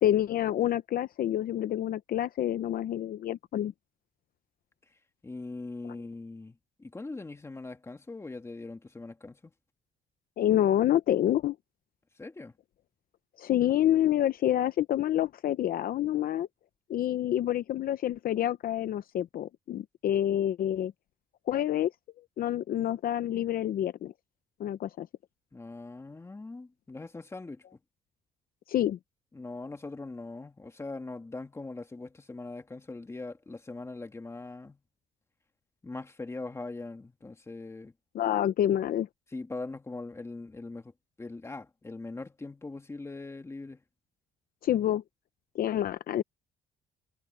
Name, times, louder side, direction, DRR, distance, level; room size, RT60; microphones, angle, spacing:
voice 1, 0.0-3.7 5.8-5.9 10.4-11.6 13.4-16.5 16.9-20.9 21.5-21.9 22.4-24.1 24.6-25.1 28.7-29.0 38.1-39.1 44.6-45.0 45.5-46.2, left 12 dB, 55° left, 0.7 m, -27 dB
voice 2, 5.2-9.5 12.2-12.5 25.5-27.6 29.3-34.8 35.8-37.9 39.3-40.9 41.2-43.8, left 3 dB, 15° left, 2.2 m, -41 dB
cardioid pair, 130°, 17 cm